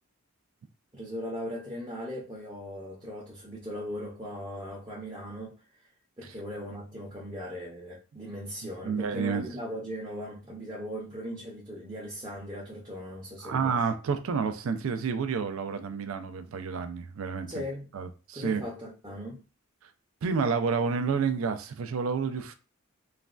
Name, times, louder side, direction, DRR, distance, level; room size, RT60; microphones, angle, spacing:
voice 1, 0.9-5.6 6.2-13.8 17.5-17.9 18.3-19.4, equal, 20° right, 0.6 m, -38 dB
voice 2, 8.8-9.5 13.4-17.5 17.9-18.6 20.2-22.5, right 5 dB, 75° right, 0.4 m, -29 dB
3.1 x 2.2 x 2.4 m
head